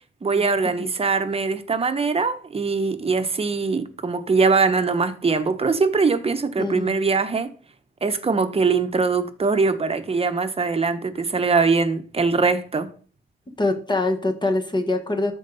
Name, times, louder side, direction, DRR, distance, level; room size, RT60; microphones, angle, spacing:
voice 1, 0.2-7.5 8.0-12.9, right 4 dB, 30° right, 1.0 m, -22 dB
voice 2, 6.6-6.9 13.6-15.4, left 2 dB, 25° left, 1.5 m, -24 dB
13.0 x 4.7 x 4.1 m
cardioid pair, 95°, 20 cm